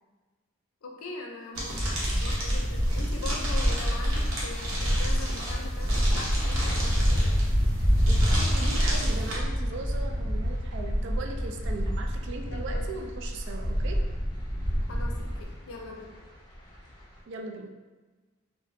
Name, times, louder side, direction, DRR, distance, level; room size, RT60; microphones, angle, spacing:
voice 1, 0.8-1.9 2.2-7.4 12.5-13.1 14.9-16.2, left 3 dB, 90° left, 1 dB, 0.5 m, -41 dB
sound 1, 1.5-9.4, right 1 dB, 75° right, 0.7 m, -34 dB
sound 2, 1.7-15.4, equal, 25° right, 0.8 m, -27 dB
sound 3, 4.1-17.2, equal, 20° left, 0.5 m, -39 dB
voice 2, 8.1-14.0 17.3-17.7, right 3 dB, 60° right, 3 dB, 0.3 m, -39 dB
2.7 x 2.0 x 3.0 m, 1.3 s
head